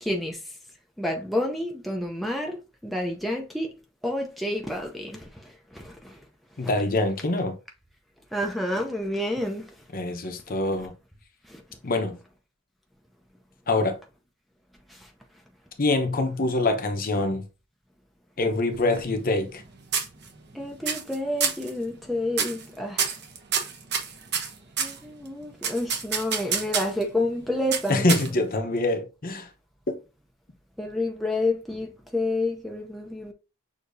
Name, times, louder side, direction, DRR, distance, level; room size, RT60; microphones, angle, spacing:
voice 1, 0.0-0.4 1.0-3.7 4.0-6.2 6.6-6.7 8.3-9.7 11.5-11.6 14.9-15.1 20.5-23.1 24.8-28.1 30.8-33.3, left 1 dB, ahead, 0.5 m, -29 dB
voice 2, 6.6-7.5 9.9-10.9 11.8-12.2 13.7-14.0 15.8-17.4 18.4-19.6 27.9-29.5 29.9-30.0, left 2 dB, 45° left, 0.8 m, -25 dB
sound 1, 18.7-19.6 19.9-20.5 20.8-21.1 21.4-21.7 22.3-22.6 23.0-25.0 25.6-27.0 27.7-28.5, right 6 dB, 55° right, 1.0 m, -27 dB
6.5 x 2.8 x 2.6 m
head